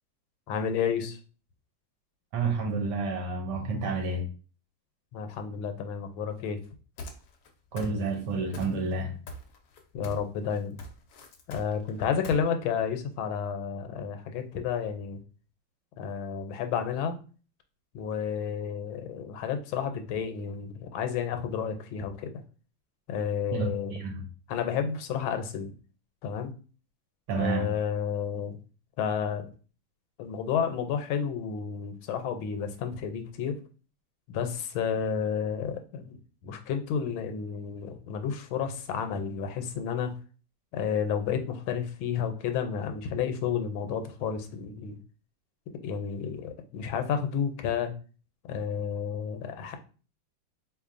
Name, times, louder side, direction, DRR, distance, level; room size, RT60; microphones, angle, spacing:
voice 1, 0.5-1.2 5.1-6.6 9.9-10.8 11.5-15.2 16.0-17.2 17.9-22.3 23.1-23.9 24.5-25.7 26.2-26.5 27.3-28.6 29.0-29.5 30.2-33.6 34.3-36.2 36.4-40.1 40.7-45.0 45.8-47.9 48.4-49.8, left 7 dB, 85° left, 1.4 m, -31 dB
voice 2, 2.3-4.3 7.7-9.2 23.5-24.2 27.3-27.7, right 3 dB, 70° right, 1.1 m, -30 dB
sound 1, 7.0-7.5 7.8-8.3 8.5-9.0 9.3-10.3 10.6-12.4, left 1 dB, 65° left, 1.0 m, -42 dB
4.2 x 2.9 x 2.5 m
omnidirectional pair, 2.2 m